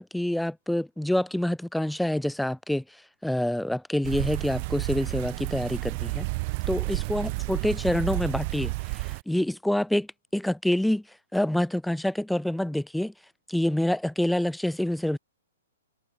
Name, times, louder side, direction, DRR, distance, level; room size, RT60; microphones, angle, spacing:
voice 1, 0.0-2.8 3.2-6.3 6.7-10.1 10.3-11.0 11.3-13.1 13.5-15.2, left 1 dB, ahead, 0.8 m, -27 dB
sound 1, 4.0-9.2, right 27 dB, 30° right, 0.8 m, -31 dB
hypercardioid pair, 170°, 0 cm